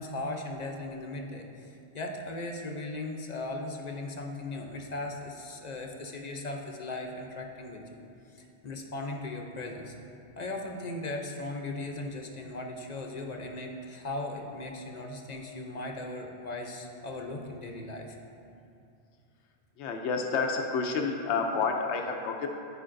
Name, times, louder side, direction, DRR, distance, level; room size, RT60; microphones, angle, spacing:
voice 1, 0.0-9.9 10.4-18.2, left 2 dB, 45° left, 2 dB, 0.7 m, -38 dB
voice 2, 19.8-22.5, left 4 dB, 85° left, 3 dB, 0.9 m, -29 dB
14.0 x 5.1 x 2.6 m, 2.6 s
omnidirectional pair, 1.1 m